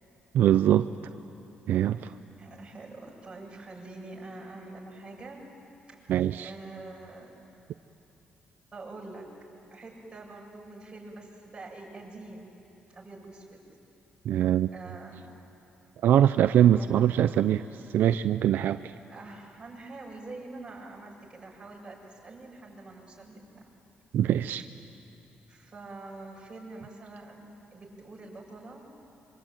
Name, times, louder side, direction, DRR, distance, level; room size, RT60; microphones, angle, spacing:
voice 1, 0.3-0.9 1.7-2.1 6.1-6.5 14.3-14.7 16.0-17.6 17.9-18.8 24.1-24.6, right 11 dB, 80° right, 11 dB, 0.5 m, -22 dB
voice 2, 1.9-5.5 5.9-7.3 8.7-9.3 9.7-12.6 12.9-13.6 14.7-15.4 16.6-17.0 19.1-23.6 25.5-28.8, right 2 dB, 25° right, -3 dB, 7.5 m, -45 dB
26.0 x 25.0 x 9.1 m, 2.9 s
cardioid pair, 105°, 3 cm